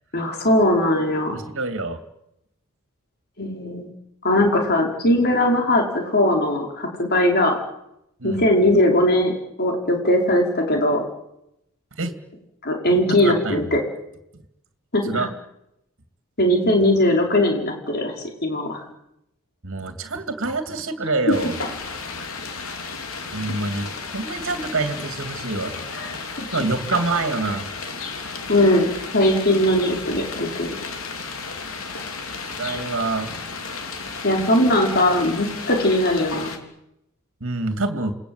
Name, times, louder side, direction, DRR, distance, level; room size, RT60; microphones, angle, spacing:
voice 1, 0.1-1.3 3.4-3.9 4.2-7.6 8.2-9.3 9.6-11.0 12.6-13.8 14.9-15.3 16.4-18.1 18.4-18.8 28.5-30.7 34.2-36.5, left 1 dB, 45° left, 1 dB, 5.1 m, -19 dB
voice 2, 1.3-2.0 8.2-8.4 11.9-12.2 13.1-13.6 15.1-15.3 19.6-21.5 23.3-26.1 26.5-27.6 32.5-33.3 37.4-38.1, right 3 dB, 60° right, 7 dB, 2.6 m, -26 dB
sound 1, 21.3-36.6, left 4 dB, 65° left, 3.9 m, -33 dB
28.5 x 21.5 x 8.1 m, 0.83 s
head